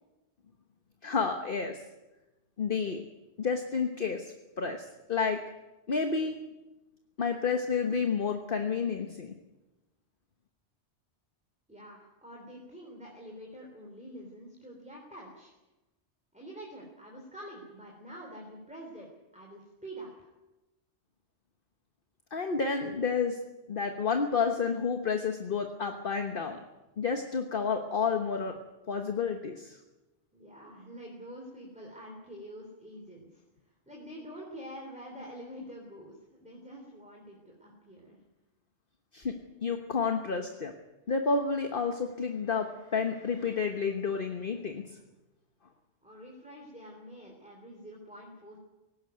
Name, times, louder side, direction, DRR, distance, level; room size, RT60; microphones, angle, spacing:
voice 1, 1.0-1.8 2.6-3.0 3.4-5.4 5.9-6.4 7.2-9.3 22.3-23.4 23.7-26.6 27.0-28.6 28.9-29.8 39.1-40.7 41.1-44.8, left 5 dB, 50° left, 5 dB, 1.4 m, -30 dB
voice 2, 11.7-15.5 16.3-20.3 30.3-33.4 33.9-38.2 46.0-48.6, equal, 5° right, 0 dB, 3.5 m, -46 dB
17.5 x 17.0 x 9.3 m, 1.0 s
omnidirectional pair, 1.2 m